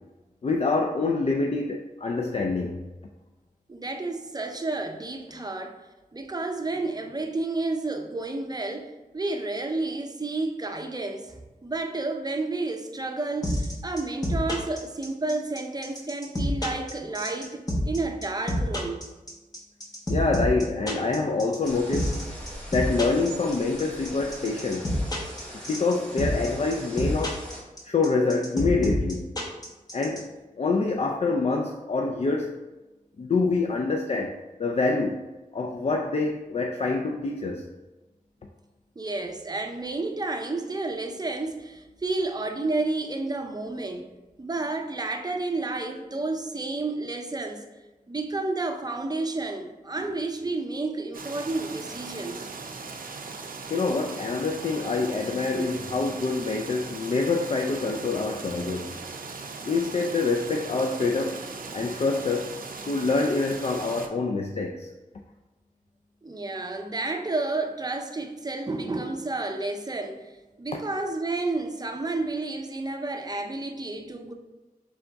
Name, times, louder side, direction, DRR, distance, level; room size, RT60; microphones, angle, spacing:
voice 1, 0.4-2.8 20.1-22.1 22.7-24.9 25.7-27.4 27.8-29.3 29.9-30.3 30.6-32.5 33.2-34.3 34.6-35.2 35.5-37.6 53.7-58.9 59.6-61.4 61.7-62.6 62.9-64.9, left 3 dB, 45° left, 1 dB, 0.4 m, -26 dB
voice 2, 3.7-5.8 6.1-17.6 17.9-19.0 39.0-44.1 44.4-47.6 48.1-52.5 66.2-70.3 70.6-74.3, right 2 dB, 25° right, 4 dB, 0.5 m, -31 dB
sound 1, 13.4-30.2, equal, 25° left, 0.9 m, -28 dB
sound 2, 21.6-27.6, equal, 5° left, 1.4 m, -42 dB
sound 3, 51.1-64.1, right 4 dB, 80° right, 0.5 m, -39 dB
3.4 x 3.4 x 3.9 m, 1.1 s
wide cardioid pair, 80°, 15 cm